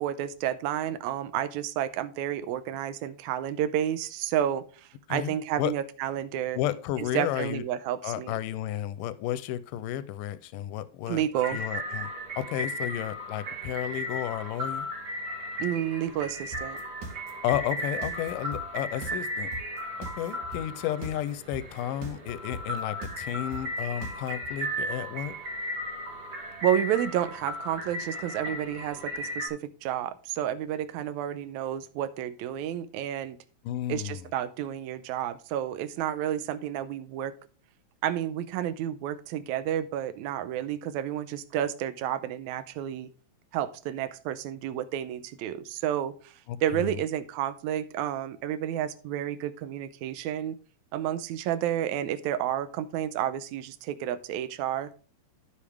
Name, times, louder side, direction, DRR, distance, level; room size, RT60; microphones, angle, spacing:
voice 1, 0.0-4.6 5.1-6.6 7.0-8.3 11.1-11.6 15.6-16.8 26.6-33.4 33.9-37.3 38.0-43.1 43.5-46.3 46.6-50.6 50.9-54.9, right 11 dB, 75° right, 12 dB, 1.8 m, -30 dB
voice 2, 5.1-5.7 6.5-7.6 8.0-11.2 11.5-12.1 12.4-14.9 17.4-19.5 20.2-25.3 33.6-34.2 46.5-47.0, left 12 dB, 80° left, 15 dB, 2.2 m, -32 dB
sound 1, 11.3-29.5, equal, 45° right, 2.4 m, -36 dB
sound 2, 16.5-24.5, right 2 dB, 60° right, 2.7 m, -40 dB
13.5 x 5.2 x 3.5 m, 0.39 s
omnidirectional pair, 4.0 m